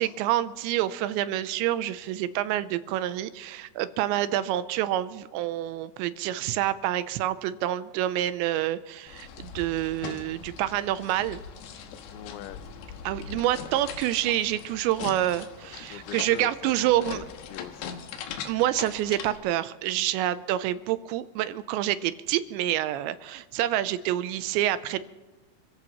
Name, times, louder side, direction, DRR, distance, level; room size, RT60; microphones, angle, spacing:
voice 1, 0.0-11.4 13.0-17.2 18.5-25.0, right 13 dB, 85° right, 13 dB, 2.9 m, -27 dB
sound 1, 9.1-19.4, left 7 dB, 70° left, 3.1 m, -41 dB
voice 2, 12.1-12.6 15.6-17.1 17.5-18.0, left 13 dB, 90° left, 12 dB, 3.1 m, -42 dB
27.5 x 16.0 x 3.1 m, 1.2 s
omnidirectional pair, 5.3 m